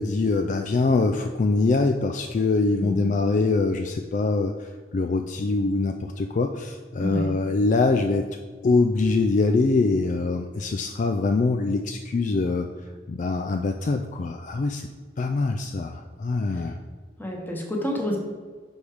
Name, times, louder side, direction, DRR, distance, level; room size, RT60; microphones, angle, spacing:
voice 1, 0.0-4.7 4.9-8.3 8.6-12.7 13.1-14.9 15.2-16.8, left 3 dB, 45° left, 5 dB, 0.4 m, -23 dB
voice 2, 17.2-18.2, left 1 dB, 10° left, 0 dB, 1.2 m, -28 dB
6.2 x 5.3 x 5.0 m, 1.5 s
head